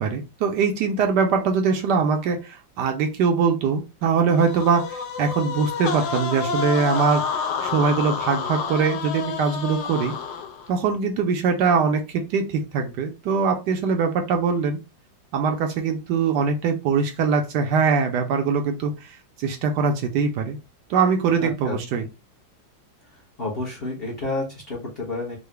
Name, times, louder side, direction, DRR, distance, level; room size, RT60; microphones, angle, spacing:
voice 1, 0.0-10.1 10.7-14.8 15.3-20.6 20.9-22.0, right 5 dB, 75° right, 4 dB, 1.1 m, -22 dB
sound 1, 4.4-10.7, left 6 dB, 70° left, 1.1 m, -29 dB
voice 2, 21.4-21.8 23.0-25.4, left 2 dB, 40° left, -4 dB, 0.9 m, -30 dB
3.8 x 2.0 x 3.2 m, 0.28 s
omnidirectional pair, 2.0 m